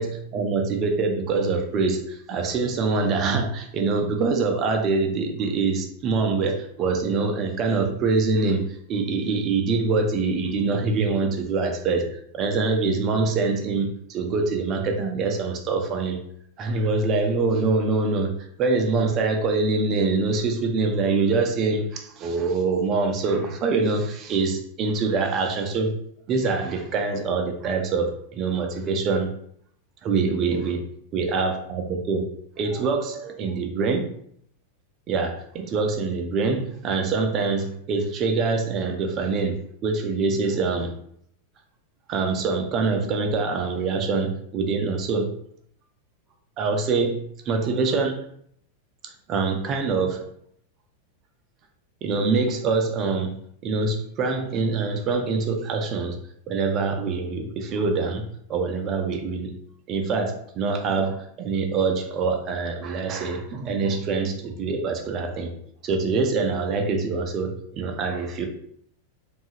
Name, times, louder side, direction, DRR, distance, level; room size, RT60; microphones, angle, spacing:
voice 1, 0.0-12.1 12.3-16.2 16.6-25.9 26.3-29.4 30.0-30.8 31.1-32.3 32.6-34.1 35.1-40.9 42.1-45.3 46.6-48.2 49.0-50.3 52.0-56.2 56.5-59.5 59.9-65.5 65.8-68.5, right 4 dB, 35° right, 4 dB, 0.4 m, -24 dB
2.7 x 2.3 x 2.7 m, 0.67 s
figure-of-eight pair, 90°, 0 cm